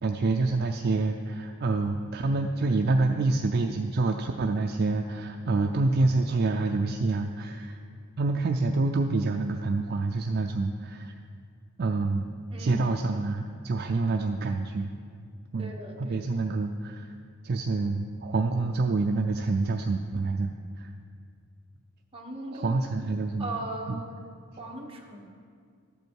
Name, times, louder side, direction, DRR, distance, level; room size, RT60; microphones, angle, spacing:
voice 1, 0.0-7.8 8.2-11.1 11.8-12.3 12.6-14.9 15.5-15.7 16.0-17.1 17.4-20.5 20.8-20.9 22.5-23.5 23.9-24.0, right 3 dB, 50° right, 4 dB, 0.4 m, -27 dB
voice 2, 12.5-12.8 15.6-16.2 22.1-22.8 23.1-24.3 24.6-25.2, right 1 dB, 25° right, -1 dB, 1.3 m, -38 dB
12.5 x 8.1 x 4.6 m, 2.2 s
head